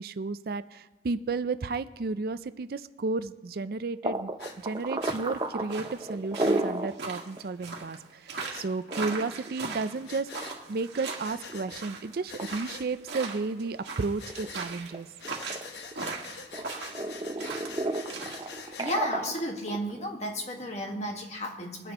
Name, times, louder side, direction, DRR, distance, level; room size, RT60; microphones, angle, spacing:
voice 1, 0.0-4.3 4.6-15.1 16.6-16.7, right 3 dB, 55° right, 13 dB, 0.4 m, -33 dB
sound 1, 4.0-6.9 7.4-7.5 7.8-7.9 8.7-11.0 11.5-11.9 12.3-12.5 13.0-14.0 14.3-16.1 16.5-20.0, right 2 dB, 25° right, 0.7 m, -33 dB
Breathing, 4.4-4.6 5.0-5.2 6.4-6.5 8.4-8.7 10.0-10.6 11.2-11.9 12.3-12.9 14.2-14.6 15.2-19.0, left 5 dB, 70° left, 1.0 m, -44 dB
sound 2, 4.4-18.5, right 4 dB, 85° right, 1.8 m, -39 dB
voice 2, 18.6-21.9, equal, 40° left, 1 dB, 1.7 m, -33 dB
21.5 x 9.8 x 3.0 m, 1.1 s
head